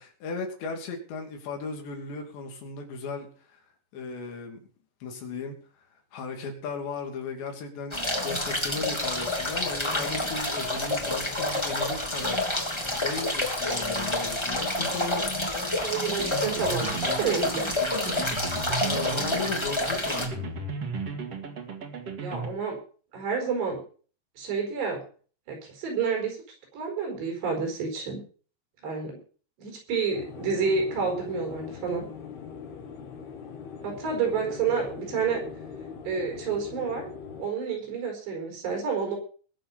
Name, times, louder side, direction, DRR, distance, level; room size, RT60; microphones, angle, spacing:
voice 1, 0.0-3.6 3.9-4.6 5.0-5.6 6.1-12.4 12.9-15.5 18.8-20.5, left 4 dB, 85° left, 3 dB, 5.0 m, -36 dB
sound 1, 7.9-20.3, left 1 dB, 10° left, 1.5 m, -28 dB
voice 2, 15.8-17.7 22.2-22.8 23.1-23.8 24.4-25.0 25.5-26.4 26.7-28.2 28.8-29.2 29.6-32.0 33.8-35.4 36.0-37.1 37.4-39.2, right 5 dB, 75° right, 3 dB, 6.9 m, -29 dB
sound 2, 15.9-22.5, right 4 dB, 45° right, 2.5 m, -35 dB
sound 3, 30.1-37.5, left 6 dB, 65° left, 4.1 m, -41 dB
21.0 x 7.1 x 5.7 m, 0.41 s
omnidirectional pair, 4.9 m